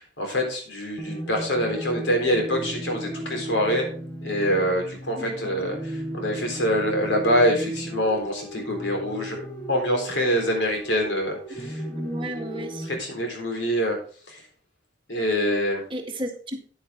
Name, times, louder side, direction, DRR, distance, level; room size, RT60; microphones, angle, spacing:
voice 1, 0.0-3.9 4.2-11.8 12.8-14.0 14.3-14.4 15.1-15.8, equal, 85° left, 3 dB, 3.8 m, -25 dB
sound 1, 1.0-13.0, right 1 dB, 15° left, 1.5 m, -35 dB
voice 2, 5.2-5.6 11.9-12.9 15.9-16.6, equal, 30° right, 2 dB, 1.9 m, -33 dB
9.6 x 9.1 x 3.5 m, 0.42 s
head